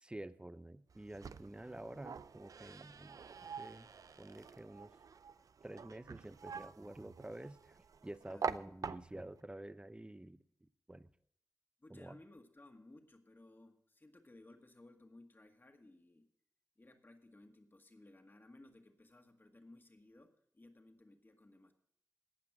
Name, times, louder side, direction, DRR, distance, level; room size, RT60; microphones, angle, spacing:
voice 1, 0.0-3.2 3.6-3.9 4.2-4.9 5.6-11.1 11.9-12.2, right 1 dB, 15° right, 14 dB, 0.7 m, -50 dB
sound 1, 0.9-9.4, right 6 dB, 70° right, 0.5 m, -46 dB
voice 2, 11.8-16.3 16.8-21.7, left 2 dB, 35° left, 5 dB, 1.9 m, -60 dB
17.5 x 5.9 x 6.1 m, 0.69 s
cardioid pair, 45°, 6 cm